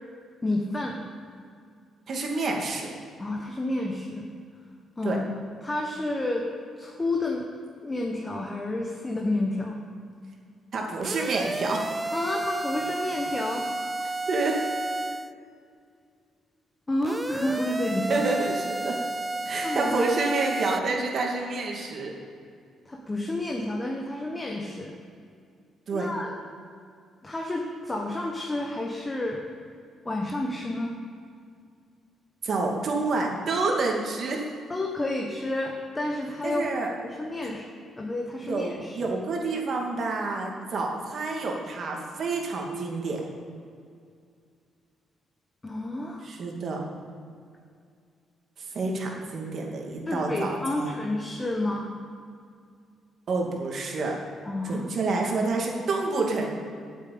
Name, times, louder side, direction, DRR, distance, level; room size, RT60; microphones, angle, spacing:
voice 1, 0.4-1.0 3.2-4.3 5.0-5.2 5.6-6.5 6.8-7.5 7.8-9.8 12.1-13.7 16.9-18.2 19.6-20.0 22.8-24.9 25.9-26.3 27.2-29.4 30.0-30.9 34.7-36.7 37.0-37.7 38.0-39.1 45.6-46.3 50.1-51.9 54.4-54.9, left 2 dB, 20° left, 0 dB, 1.3 m, -30 dB
voice 2, 2.1-2.9 5.0-5.2 10.7-11.8 14.3-14.6 18.1-19.0 19.5-22.1 25.9-26.1 32.4-34.4 36.4-36.9 38.5-43.2 46.2-46.8 48.6-50.9 53.3-54.1 54.6-56.5, right 3 dB, 55° right, 0 dB, 2.3 m, -28 dB
sound 1, 11.0-15.3 17.0-20.8, right 2 dB, 15° right, 0.4 m, -31 dB
9.5 x 7.7 x 8.8 m, 2.3 s
cardioid pair, 90°, 0 cm